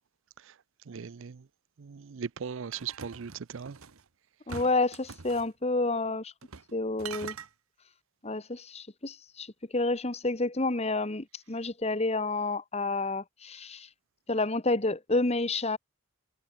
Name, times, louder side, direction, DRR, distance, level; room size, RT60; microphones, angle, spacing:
voice 1, 0.9-1.4 1.8-3.8, right 6 dB, 65° right, 0.5 m, -39 dB
sound 1, 2.7-4.0 4.5-5.5 6.4-6.7 7.0-7.5, right 6 dB, 85° right, 1.2 m, -43 dB
voice 2, 4.5-6.3 6.7-7.3 8.2-13.9 14.3-15.8, left 2 dB, 30° left, 1.3 m, -29 dB
head